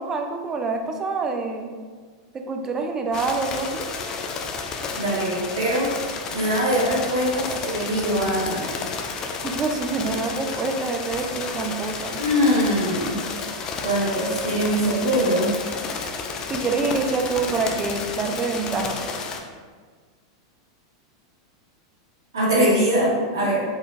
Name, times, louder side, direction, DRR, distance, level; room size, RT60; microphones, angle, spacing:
voice 1, 0.0-1.7 2.5-3.9 9.4-12.1 14.5-14.6 16.5-19.1 23.4-23.5, right 4 dB, 25° right, 4 dB, 0.5 m, -26 dB
sound 1, 3.1-19.4, left 4 dB, 35° left, 0.4 m, -31 dB
voice 2, 5.0-5.9 6.3-8.6 12.2-13.1 13.8-15.5 22.3-23.6, equal, 80° right, -6 dB, 1.2 m, -22 dB
3.8 x 3.2 x 2.6 m, 1.6 s
hypercardioid pair, 100°, 2 cm